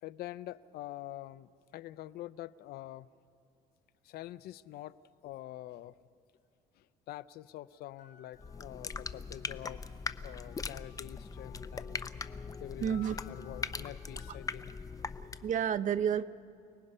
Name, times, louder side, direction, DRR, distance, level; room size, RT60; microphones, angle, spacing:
voice 1, 0.0-3.1 4.0-5.0 5.2-5.9 6.8-9.9 10.2-12.2 12.6-14.7, left 14 dB, 80° left, 18 dB, 0.5 m, -46 dB
sound 1, 7.7-9.5 10.5-14.8, left 8 dB, 50° left, 5.0 m, -60 dB
sound 2, 8.3-15.6, left 4 dB, 20° left, 0.6 m, -41 dB
voice 2, 12.8-13.2 14.3-14.4 15.4-16.2, right 8 dB, 50° right, 12 dB, 0.7 m, -30 dB
29.5 x 19.5 x 5.5 m, 2.4 s
cardioid pair, 115°, 16 cm